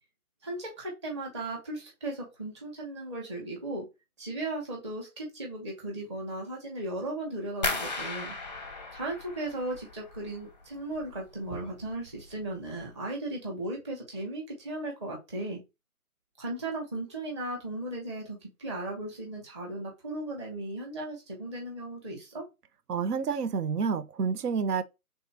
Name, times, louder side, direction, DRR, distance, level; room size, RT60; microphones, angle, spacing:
voice 1, 0.4-3.9 4.2-8.4 8.9-15.6 16.4-22.5, right 2 dB, 20° right, 0.9 m, -36 dB
sound 1, 7.6-10.5 10.8-11.5 11.8-12.3 12.7-12.8, left 3 dB, 30° left, 0.5 m, -36 dB
voice 2, 22.9-24.8, right 6 dB, 85° right, 0.6 m, -29 dB
3.5 x 2.7 x 4.1 m
hypercardioid pair, 160°, 45 cm